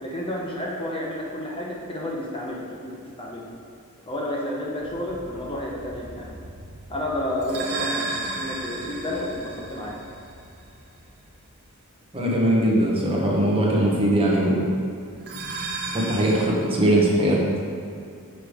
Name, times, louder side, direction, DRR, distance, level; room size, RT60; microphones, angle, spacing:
voice 1, 0.0-3.5 4.1-6.3 6.9-10.0, left 1 dB, 25° left, -3 dB, 0.9 m, -31 dB
Ice Glas and Shimmer, 4.8-11.4 15.1-16.5, right 3 dB, 45° right, 0.9 m, -35 dB
voice 2, 12.1-14.6 15.9-17.6, right 1 dB, 25° right, -3 dB, 1.1 m, -21 dB
6.6 x 5.8 x 5.0 m, 2.4 s
head